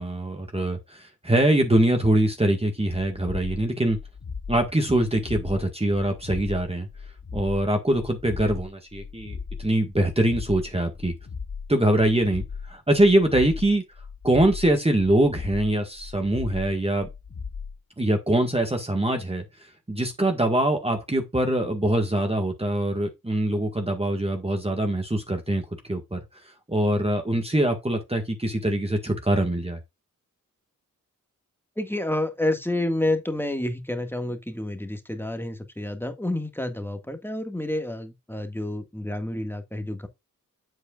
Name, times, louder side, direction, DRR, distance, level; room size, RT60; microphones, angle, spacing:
voice 1, 0.0-4.0 4.5-6.9 7.3-11.1 11.7-13.8 14.2-17.1 18.0-19.4 19.9-26.2 26.7-29.8, right 1 dB, 20° right, 1.7 m, -23 dB
sound 1, 3.9-17.8, left 5 dB, 45° left, 1.0 m, -37 dB
voice 2, 31.8-40.1, left 1 dB, 5° left, 1.9 m, -29 dB
8.0 x 7.8 x 2.5 m
wide cardioid pair, 85°, 33 cm